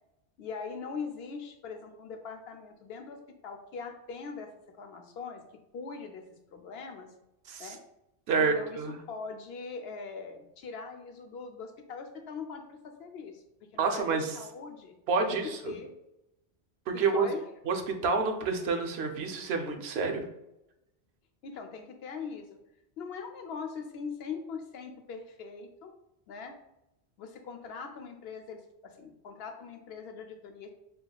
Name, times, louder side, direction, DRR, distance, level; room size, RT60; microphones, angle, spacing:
voice 1, 0.4-3.2 3.4-5.4 5.7-6.2 6.5-7.1 7.6-7.8 8.3-8.8 9.1-13.4 13.7-15.4 15.7-15.9 16.9-17.5 21.4-22.5 23.0-25.9 26.3-26.5 27.2-30.7, left 5 dB, 70° left, 4 dB, 0.8 m, -41 dB
voice 2, 8.3-8.9 13.8-14.4 15.1-15.7 16.9-17.3 17.7-20.2, right 4 dB, 70° right, 4 dB, 0.8 m, -28 dB
6.5 x 2.3 x 2.3 m, 0.90 s
omnidirectional pair, 1.1 m